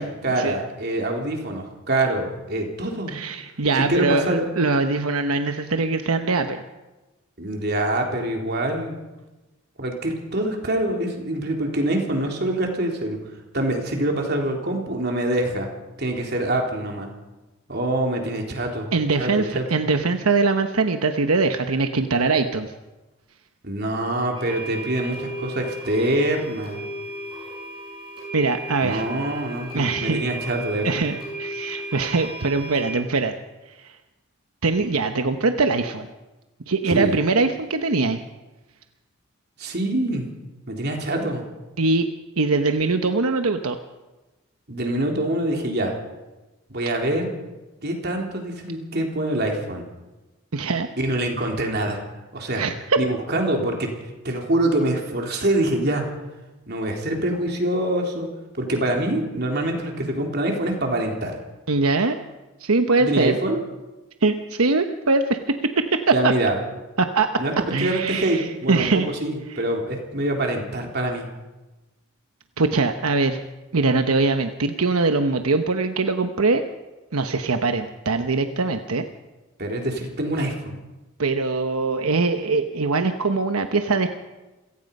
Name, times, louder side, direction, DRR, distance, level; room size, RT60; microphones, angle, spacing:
voice 1, 0.0-3.2 3.8-4.5 7.4-8.9 9.8-13.2 13.5-15.7 16.0-17.1 17.7-19.6 23.6-26.8 28.8-31.0 36.9-37.2 39.6-40.3 40.7-41.4 44.7-46.0 46.7-47.3 47.8-49.8 51.0-52.0 52.3-52.6 53.0-53.9 54.2-56.0 56.7-58.3 58.5-61.4 63.0-63.6 66.1-66.6 67.4-67.5 67.8-71.3 79.6-80.8, right 1 dB, 50° right, 1 dB, 3.7 m, -25 dB
voice 2, 3.1-6.6 18.9-22.7 28.3-29.1 29.7-30.2 30.8-33.4 33.8-33.9 34.6-36.1 36.7-38.2 41.8-42.1 42.4-43.8 50.5-50.9 52.6-53.0 61.7-62.2 62.6-63.4 64.2-65.4 65.9-66.0 66.2-66.3 67.0-67.3 67.7-69.1 69.5-69.6 72.6-73.4 73.7-76.6 77.1-79.0 81.2-84.1, right 3 dB, 85° right, 7 dB, 1.1 m, -22 dB
sound 1, 24.4-32.9, right 1 dB, 25° right, 7.3 m, -35 dB
27.5 x 17.5 x 5.5 m, 1.1 s
head